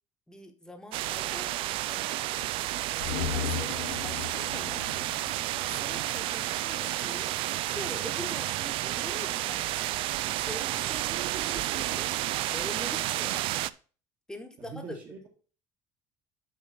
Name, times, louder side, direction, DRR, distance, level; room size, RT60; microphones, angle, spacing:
voice 1, 0.3-2.7 3.1-4.8 5.7-9.8 10.4-12.2 12.5-13.6 14.3-15.0, left 1 dB, 5° left, 6 dB, 1.2 m, -44 dB
sound 1, 0.9-13.7, right 15 dB, 65° right, 0.4 m, -31 dB
sound 2, 3.0-6.4 6.7-6.8, left 8 dB, 80° left, 0.8 m, -36 dB
voice 2, 14.6-15.3, right 4 dB, 45° right, -3 dB, 1.9 m, -43 dB
6.5 x 5.8 x 5.8 m, 0.38 s
cardioid pair, 130°, 10 cm